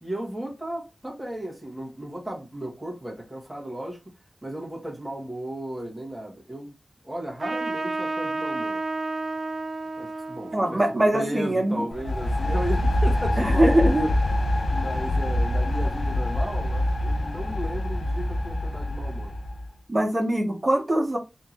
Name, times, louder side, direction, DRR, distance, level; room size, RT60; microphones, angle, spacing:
voice 1, 0.0-4.1 4.4-6.7 7.0-8.8 10.0-10.8 11.1-14.1 14.7-19.3, right 1 dB, 5° right, 1.4 m, -35 dB
Trumpet, 7.4-12.4, right 2 dB, 65° right, 0.8 m, -32 dB
voice 2, 10.5-11.8 13.4-14.1 19.9-21.2, right 1 dB, 25° right, 1.5 m, -22 dB
sound 1, 11.9-19.7, left 1 dB, 80° left, 0.9 m, -25 dB
3.6 x 2.9 x 3.9 m
wide cardioid pair, 110°, 0 cm